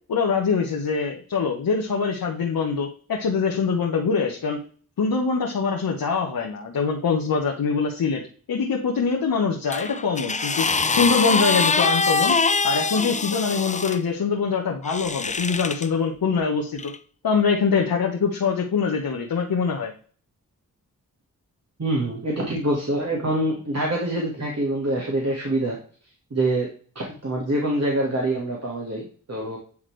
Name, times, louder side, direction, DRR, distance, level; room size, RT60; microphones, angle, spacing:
voice 1, 0.1-4.6 5.0-8.2 8.5-12.4 12.6-16.9 17.2-19.9, left 5 dB, 75° left, -1 dB, 1.2 m, -24 dB
sound 1, 9.7-14.0 14.8-15.9 16.8-17.0, left 4 dB, 20° left, 0.5 m, -23 dB
voice 2, 21.8-25.8 26.3-26.7 27.0-29.6, right 1 dB, 45° right, -2 dB, 2.0 m, -25 dB
9.5 x 3.6 x 3.3 m, 0.42 s
cardioid pair, 45°, 35 cm